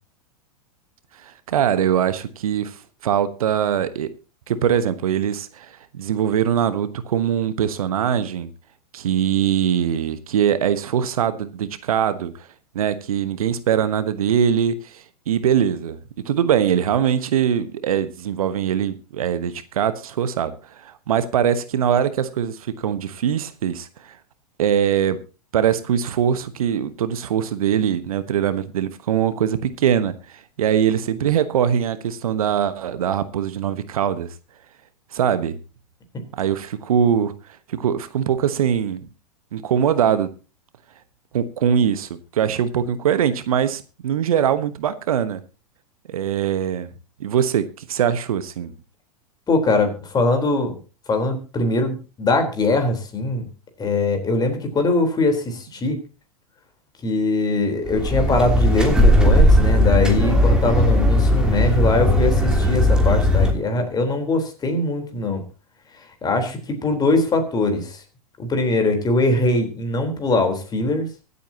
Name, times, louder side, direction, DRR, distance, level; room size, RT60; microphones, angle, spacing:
voice 1, 1.2-4.1 4.5-8.5 8.9-12.5 12.7-16.0 16.2-24.2 24.6-25.2 25.5-34.3 35.1-35.6 36.4-37.3 37.7-39.0 39.5-40.3 41.3-45.4 46.1-46.9 47.2-48.7, right 9 dB, 70° right, 13 dB, 1.2 m, -22 dB
voice 2, 49.5-50.7 51.1-53.5 53.8-56.0 57.0-65.4 66.2-68.0 68.4-71.1, left 2 dB, 20° left, 5 dB, 3.8 m, -21 dB
sound 1, 57.9-63.5, left 1 dB, 5° right, 3.0 m, -17 dB
24.0 x 8.4 x 2.9 m, 0.33 s
hypercardioid pair, 100°, 19 cm